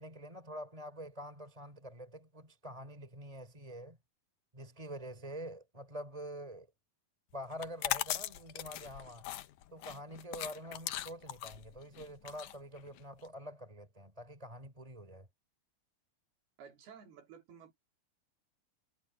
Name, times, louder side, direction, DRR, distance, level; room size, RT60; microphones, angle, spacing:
voice 1, 0.0-4.0 4.5-6.7 7.3-9.3 9.7-15.3, equal, 10° right, 3.0 m, -46 dB
sound 1, 7.5-13.3, left 13 dB, 70° left, 2.1 m, -39 dB
voice 2, 16.6-17.8, right 7 dB, 80° right, 4.6 m, -54 dB
omnidirectional pair, 4.5 m